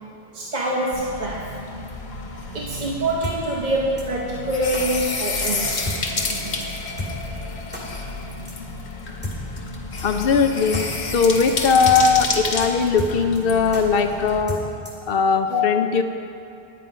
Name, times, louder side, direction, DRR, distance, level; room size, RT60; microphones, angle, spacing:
voice 1, 0.3-2.0 2.5-6.8 7.3-7.5 9.6-9.7, right 1 dB, 45° right, -3 dB, 0.9 m, -26 dB
sound 1, 0.9-14.4, left 3 dB, 85° left, 1.3 m, -30 dB
sound 2, 3.2-3.4 4.0-4.1 4.7-4.8 5.5-5.6 5.9-6.0 6.2-6.3 6.6-6.7 7.0-7.1 7.7-7.8 8.5-8.6 9.2-9.4 10.0-10.1 10.4-10.5 10.7-10.9 11.1-11.2 11.5-11.6 11.9-12.0 12.2-12.3 12.6-12.7 13.0-13.4 13.7-13.8 14.5-15.1, left 1 dB, 10° right, 1.9 m, -31 dB
voice 2, 10.0-14.6 15.1-16.0, left 5 dB, 65° left, 6 dB, 0.9 m, -19 dB
9.5 x 9.5 x 5.1 m, 2.8 s
omnidirectional pair, 1.1 m